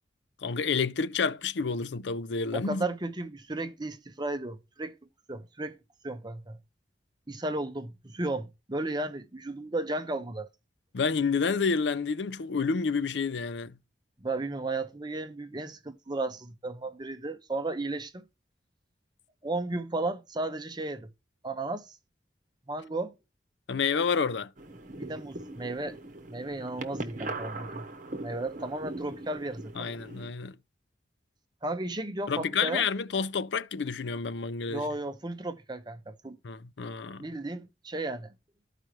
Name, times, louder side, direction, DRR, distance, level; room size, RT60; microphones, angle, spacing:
voice 1, 0.4-2.9 10.9-13.8 23.7-24.5 29.8-30.6 32.3-34.9 36.4-37.2, left 5 dB, 90° left, 0.6 m, -29 dB
voice 2, 2.5-5.0 5.3-5.8 6.0-6.6 7.3-10.5 14.2-18.2 19.4-21.1 21.4-22.0 22.7-23.1 25.0-26.0 26.3-27.8 28.2-29.9 31.6-32.8 34.7-36.4 37.2-38.3, right 2 dB, 25° right, 0.8 m, -34 dB
sound 1, 24.6-30.3, right 2 dB, 50° right, 1.1 m, -40 dB
13.0 x 5.0 x 3.1 m
head